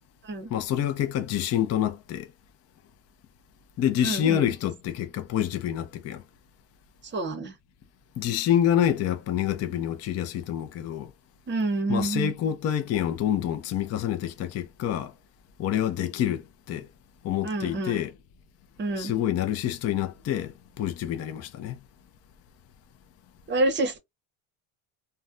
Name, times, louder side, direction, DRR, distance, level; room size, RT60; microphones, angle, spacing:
voice 1, 0.5-2.3 3.8-6.2 8.2-11.1 11.9-15.1 15.6-16.9 17.2-18.1 19.0-21.8, left 10 dB, 35° left, 0.4 m, -27 dB
voice 2, 4.0-4.5 7.1-7.5 11.5-12.3 17.4-18.0 18.8-19.1 23.5-24.0, right 2 dB, 25° right, 0.7 m, -28 dB
2.2 x 2.2 x 3.6 m
cardioid pair, 125°, 47 cm